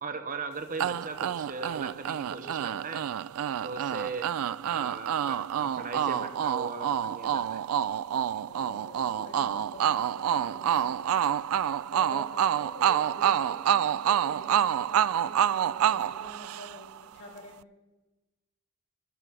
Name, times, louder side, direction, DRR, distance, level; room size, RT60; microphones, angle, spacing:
voice 1, 0.0-3.1 3.6-4.3 4.6-7.6, right 4 dB, 35° right, 8 dB, 1.0 m, -38 dB
sound 1, 0.8-17.0, right 9 dB, 70° right, 0.3 m, -28 dB
voice 2, 8.4-11.2 11.9-17.6, left 1 dB, 60° left, -2 dB, 5.3 m, -47 dB
12.5 x 12.0 x 6.2 m, 1.1 s
head